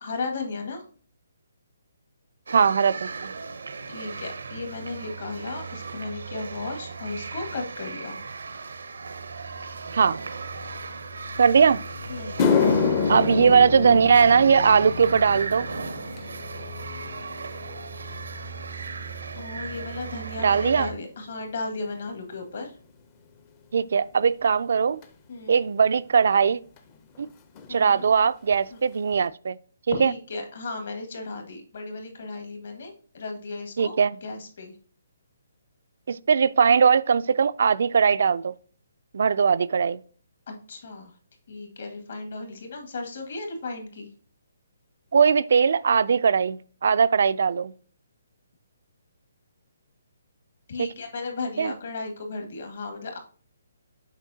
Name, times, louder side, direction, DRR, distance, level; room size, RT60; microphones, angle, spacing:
voice 1, 0.0-0.8 3.9-8.2 12.1-12.4 19.3-22.8 25.3-25.6 27.7-28.1 28.7-28.8 29.9-34.8 40.5-41.1 41.5-44.1 50.7-53.2, left 3 dB, 55° left, 1.9 m, -35 dB
voice 2, 2.5-3.3 9.9-10.2 11.4-11.8 13.1-15.7 20.4-20.9 23.7-25.0 25.5-26.6 27.2-27.3 27.7-29.6 30.0-30.1 33.8-34.2 36.1-38.5 39.1-40.0 45.1-47.7 50.8-50.9 51.6-51.7, right 6 dB, 60° right, 0.3 m, -20 dB
sound 1, 2.5-20.9, right 3 dB, 85° right, 0.7 m, -36 dB
sound 2, 11.7-11.8 12.2-20.7 21.0-21.4 22.2-22.3 25.0-25.1 26.8-26.9 27.0-27.3 27.5-28.1 28.5-28.6 29.1-29.2, left 5 dB, 20° left, 0.5 m, -29 dB
7.3 x 4.9 x 2.7 m
hypercardioid pair, 170°, 0 cm